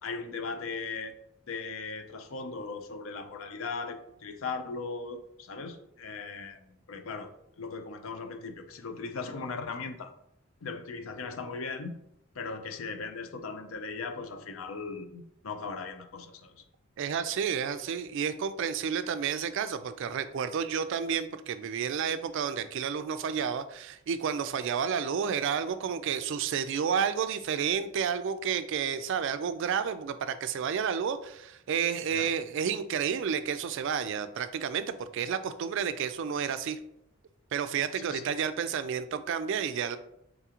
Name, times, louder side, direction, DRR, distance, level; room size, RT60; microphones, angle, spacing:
voice 1, 0.0-1.2 1.5-7.3 7.6-10.1 10.6-12.0 12.3-16.6 32.1-32.3 37.9-38.3, left 4 dB, 70° left, 8 dB, 0.5 m, -38 dB
voice 2, 17.0-36.8 37.5-40.0, right 7 dB, 60° right, 11 dB, 0.3 m, -31 dB
3.9 x 3.6 x 2.9 m, 0.76 s
head